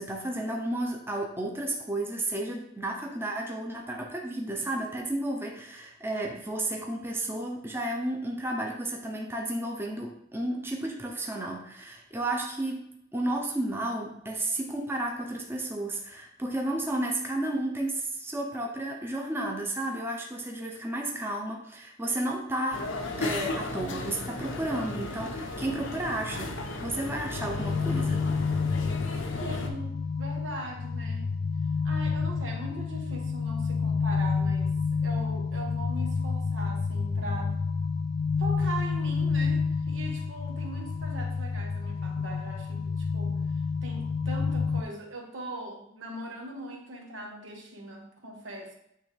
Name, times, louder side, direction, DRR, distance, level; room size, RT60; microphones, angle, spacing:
voice 1, 0.0-22.9 23.2-28.3, right 1 dB, 10° right, 1 dB, 0.7 m, -32 dB
sound 1, 22.7-29.7, left 2 dB, 85° left, 0.8 m, -35 dB
sound 2, 27.3-44.8, left 5 dB, 45° left, 0.3 m, -29 dB
voice 2, 29.4-31.4 31.8-34.7 35.0-37.6 38.4-48.7, right 1 dB, 80° right, 1 dB, 1.3 m, -40 dB
8.6 x 3.4 x 3.3 m, 0.77 s
head